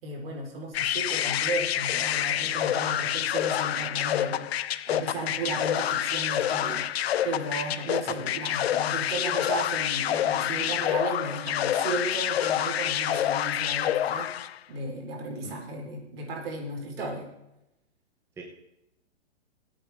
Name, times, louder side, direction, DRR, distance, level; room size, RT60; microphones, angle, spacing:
voice 1, 0.0-14.3 14.7-17.2, right 2 dB, 55° right, 0 dB, 4.6 m, -35 dB
sound 1, 0.7-14.6, left 11 dB, 65° left, 0.7 m, -27 dB
voice 2, 8.2-8.3 15.4-15.6 17.0-17.1 18.4-18.5, right 4 dB, 10° right, 0 dB, 1.0 m, -43 dB
20.5 x 8.8 x 3.7 m, 0.88 s
hypercardioid pair, 150°, 34 cm